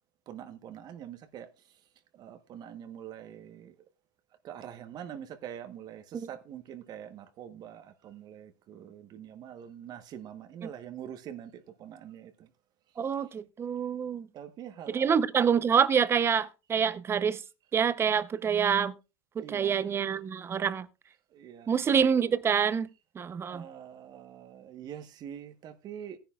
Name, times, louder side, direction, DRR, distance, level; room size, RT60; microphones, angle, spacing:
voice 1, 0.3-1.5 2.1-3.7 4.4-12.5 14.3-15.2 19.4-19.9 21.3-21.8 23.5-26.2, right 9 dB, 40° right, 1.1 m, -44 dB
voice 2, 13.0-14.3 14.9-17.4 17.7-18.9 19.4-20.9 21.7-22.9 23.2-23.6, right 7 dB, 20° right, 0.7 m, -26 dB
16.0 x 10.5 x 2.4 m
supercardioid pair, 125°, 11 cm